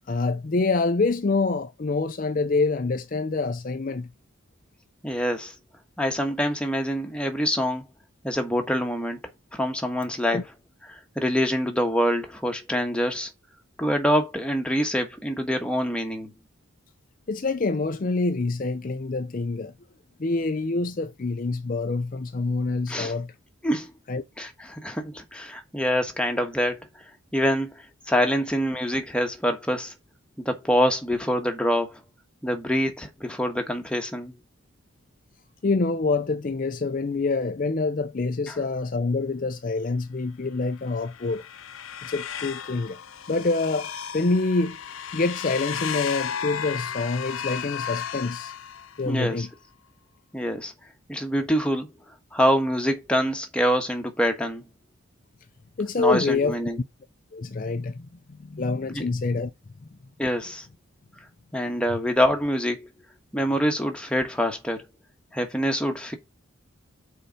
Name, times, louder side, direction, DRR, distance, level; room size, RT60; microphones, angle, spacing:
voice 1, 0.1-4.1 10.3-10.4 17.3-19.7 20.2-23.3 24.1-24.2 35.6-41.4 42.0-43.0 43.3-44.8 45.1-48.5 49.0-49.5 55.8-56.6 57.3-58.1 58.5-59.5, left 3 dB, 40° left, 0.5 m, -26 dB
voice 2, 5.0-5.5 6.0-7.9 8.2-9.2 9.5-10.4 10.9-13.3 13.8-16.3 22.9-23.1 23.6-23.9 24.4-26.9 27.3-27.7 28.1-29.9 30.4-32.0 32.4-34.3 38.5-38.6 49.0-49.5 50.3-50.7 51.1-51.9 52.3-54.6 56.0-56.8 58.9-59.1 60.2-60.7 61.5-62.9 63.3-64.8 65.3-66.2, equal, 5° left, 1.3 m, -25 dB
sound 1, 40.9-49.2, left 8 dB, 75° left, 0.7 m, -34 dB
6.7 x 4.6 x 5.3 m
head